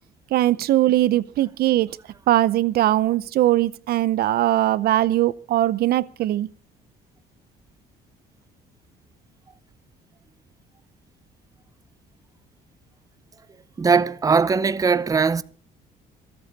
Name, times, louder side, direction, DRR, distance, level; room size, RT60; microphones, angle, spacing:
voice 1, 0.3-2.0 2.3-6.5, right 14 dB, 65° right, 0.6 m, -20 dB
voice 2, 13.8-15.4, right 5 dB, 20° right, 0.7 m, -20 dB
26.0 x 8.8 x 4.1 m
cardioid pair, 110°, 17 cm